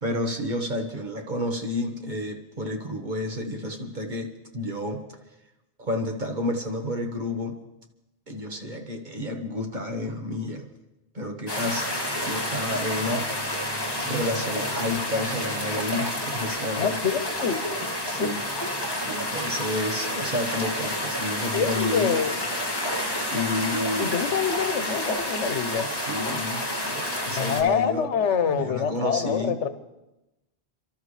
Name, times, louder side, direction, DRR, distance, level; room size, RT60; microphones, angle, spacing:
voice 1, 0.0-5.0 5.8-7.6 8.3-10.7 11.1-11.9 12.2-13.3 14.0-17.0 17.8-18.4 19.0-22.2 23.3-24.1 25.8-28.1 28.4-29.6, left 1 dB, 40° right, 3 dB, 1.5 m, -30 dB
sound 1, 11.5-27.6, left 1 dB, 20° left, 2.0 m, -29 dB
voice 2, 16.8-17.6 18.2-18.3 21.5-22.3 24.0-25.9 27.3-29.7, left 7 dB, 80° left, 10 dB, 1.3 m, -26 dB
29.0 x 12.5 x 3.3 m, 0.98 s
omnidirectional pair, 1.2 m